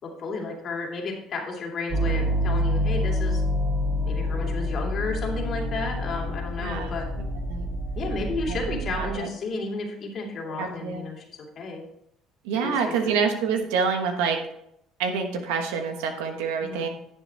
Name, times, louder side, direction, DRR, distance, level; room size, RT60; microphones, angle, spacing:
voice 1, 0.0-3.4 4.0-7.1 7.9-11.8 12.6-13.2 16.6-16.9, left 3 dB, 55° left, 0 dB, 2.6 m, -32 dB
sound 1, 1.9-9.2, equal, 50° right, 3.0 m, -27 dB
voice 2, 6.5-6.9 7.2-7.7 8.5-9.3 10.5-11.1 12.4-14.4 15.0-16.9, right 5 dB, 85° right, 5 dB, 1.3 m, -27 dB
10.5 x 7.7 x 3.4 m, 0.77 s
supercardioid pair, 75°, 0 cm